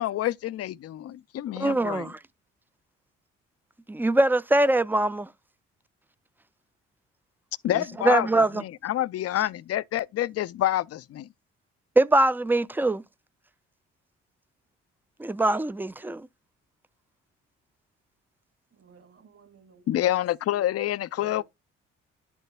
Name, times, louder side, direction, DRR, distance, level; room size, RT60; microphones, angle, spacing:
voice 1, 0.0-2.1 7.6-11.3 19.9-21.4, left 13 dB, 50° left, 0.5 m, -28 dB
voice 2, 1.6-2.2 3.9-5.3 7.7-8.6 12.0-13.0 15.2-16.3, right 2 dB, 5° right, 0.5 m, -23 dB
voice 3, 18.7-20.2 21.2-21.4, right 5 dB, 45° right, 2.2 m, -53 dB
10.5 x 6.9 x 2.3 m
hypercardioid pair, 50°, 32 cm